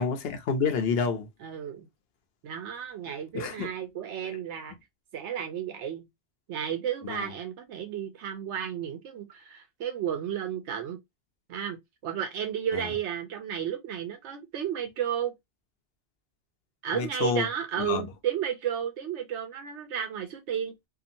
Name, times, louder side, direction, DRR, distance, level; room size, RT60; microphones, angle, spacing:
voice 1, 0.0-1.3 3.3-3.7 4.2-4.3 7.0-7.3 12.7-12.9 16.9-17.5 17.8-18.0, left 5 dB, 65° left, 0.8 m, -28 dB
voice 2, 1.4-1.9 2.4-4.8 5.1-6.1 6.5-11.0 11.5-15.3 16.8-20.7, right 9 dB, 85° right, 0.9 m, -33 dB
2.8 x 2.4 x 2.5 m
omnidirectional pair, 1.2 m